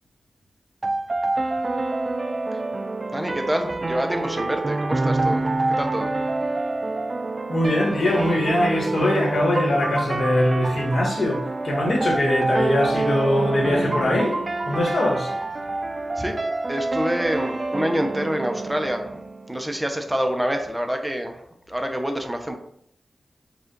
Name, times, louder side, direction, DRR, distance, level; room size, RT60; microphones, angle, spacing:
sound 1, 0.8-19.8, right 2 dB, 40° right, 0.3 m, -27 dB
voice 1, 3.0-6.2 16.2-16.4 16.7-19.2 19.5-22.6, equal, 10° right, 4 dB, 0.7 m, -27 dB
voice 2, 7.5-14.4 14.7-15.3, left 1 dB, 70° left, -1 dB, 1.4 m, -22 dB
4.8 x 2.5 x 3.9 m, 0.70 s
wide cardioid pair, 65°, 0 cm